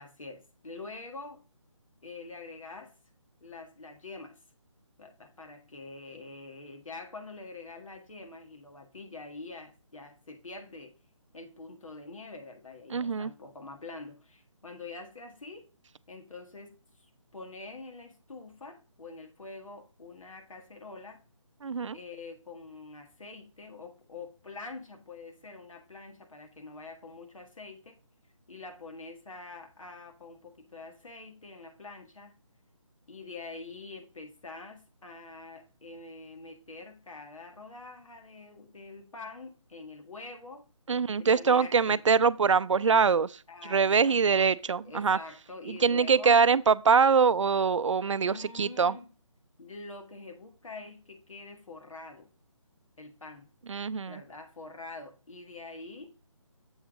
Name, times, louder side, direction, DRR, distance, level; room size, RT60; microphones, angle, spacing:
voice 1, 0.0-1.4 2.0-2.9 3.4-4.4 5.0-10.9 11.3-15.7 16.1-21.2 21.9-28.0 28.5-32.3 33.1-40.7 41.2-42.0 43.5-44.5 44.8-46.4 48.2-49.1 49.6-52.3 53.0-53.5 54.1-56.1, left 3 dB, 80° left, 1.6 m, -45 dB
voice 2, 12.9-13.3 21.6-22.0 40.9-43.4 43.7-45.2 45.7-48.9 53.7-54.2, right 5 dB, 65° right, 0.4 m, -24 dB
7.1 x 3.7 x 5.1 m
hypercardioid pair, 175°, 17 cm